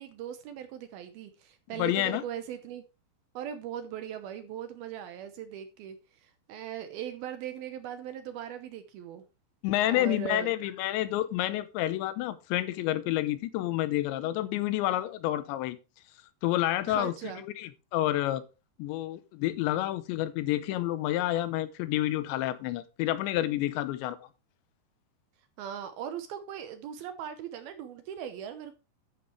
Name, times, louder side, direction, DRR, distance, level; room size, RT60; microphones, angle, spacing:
voice 1, 0.0-2.8 3.3-9.2 9.8-10.5 16.9-17.4 25.6-28.7, right 9 dB, 75° right, 2.4 m, -39 dB
voice 2, 1.8-2.2 9.6-15.8 16.4-18.4 18.8-24.2, left 14 dB, 90° left, 3.1 m, -29 dB
12.0 x 9.6 x 3.2 m
omnidirectional pair, 5.1 m